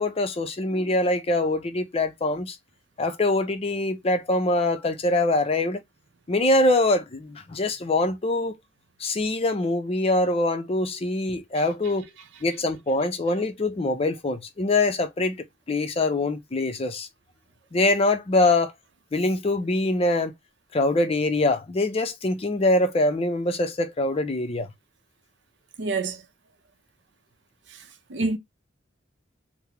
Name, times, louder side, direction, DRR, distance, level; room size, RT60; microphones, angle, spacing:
voice 1, 0.0-2.6 3.0-5.8 6.3-8.5 9.0-12.1 12.4-17.1 17.7-18.7 19.1-20.3 20.7-24.7, left 2 dB, 30° left, 0.5 m, -24 dB
voice 2, 25.8-26.2 28.1-28.4, right 3 dB, 65° right, 0.6 m, -26 dB
3.5 x 2.0 x 2.8 m
head